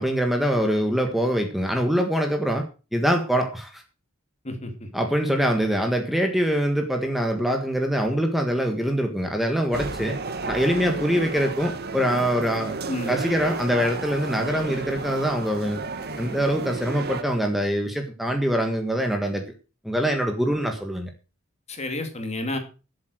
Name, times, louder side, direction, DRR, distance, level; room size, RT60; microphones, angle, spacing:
voice 1, 0.0-2.6 2.9-3.8 4.9-10.1 10.5-12.7 13.1-15.8 16.2-19.4 19.8-21.1, equal, ahead, 3 dB, 1.6 m, -24 dB
voice 2, 4.4-4.9 12.9-13.1 21.7-22.6, left 1 dB, 35° left, 6 dB, 2.6 m, -30 dB
sound 1, 9.7-17.2, right 3 dB, 50° right, 1.5 m, -32 dB
12.5 x 7.8 x 6.5 m, 0.34 s
head